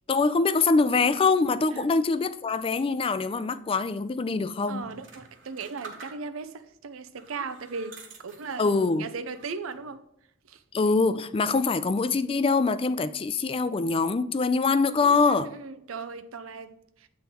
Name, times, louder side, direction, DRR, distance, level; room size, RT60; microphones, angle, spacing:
voice 1, 0.1-4.8 8.6-9.1 10.7-15.5, left 4 dB, 25° left, 0.4 m, -24 dB
voice 2, 4.7-10.0 10.5-10.6 15.0-17.1, right 4 dB, 90° right, 0.6 m, -37 dB
sound 1, 4.8-6.6 7.1-8.9 9.3-9.9, right 4 dB, 65° right, 1.5 m, -48 dB
8.1 x 3.8 x 5.9 m
head